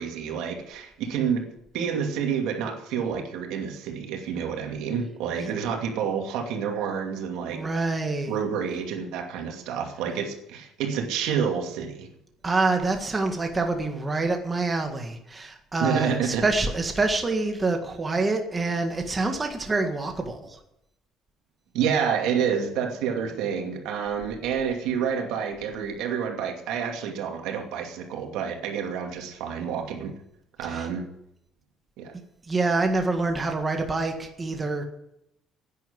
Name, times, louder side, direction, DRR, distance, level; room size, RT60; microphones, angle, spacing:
voice 1, 0.0-1.4 1.7-7.6 8.3-12.1 15.8-16.4 21.7-30.1 30.6-31.0 32.0-32.1, right 7 dB, 80° right, 3 dB, 2.5 m, -28 dB
voice 2, 7.5-8.3 12.4-20.6 30.6-30.9 32.5-34.8, right 3 dB, 20° right, 4 dB, 1.7 m, -26 dB
11.0 x 9.5 x 9.4 m, 0.81 s
cardioid pair, 135°, 0 cm